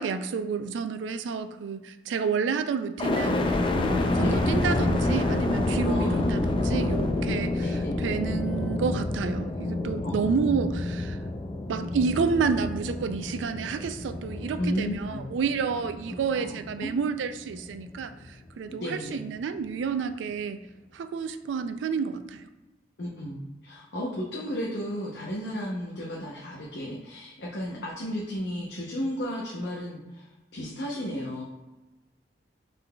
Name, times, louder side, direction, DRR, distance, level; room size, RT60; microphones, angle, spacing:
voice 1, 0.0-3.4 3.7-11.2 11.7-20.6 20.9-22.5, right 5 dB, 85° right, 10 dB, 0.3 m, -30 dB
sound 1, 3.0-17.0 17.5-18.2, left 2 dB, 30° left, 0.4 m, -28 dB
voice 2, 5.8-6.5 7.5-8.0 10.0-10.3 14.6-15.3 16.3-16.9 18.7-19.2 23.0-31.4, equal, 70° left, -4 dB, 0.7 m, -34 dB
5.5 x 3.9 x 2.2 m, 1.1 s
head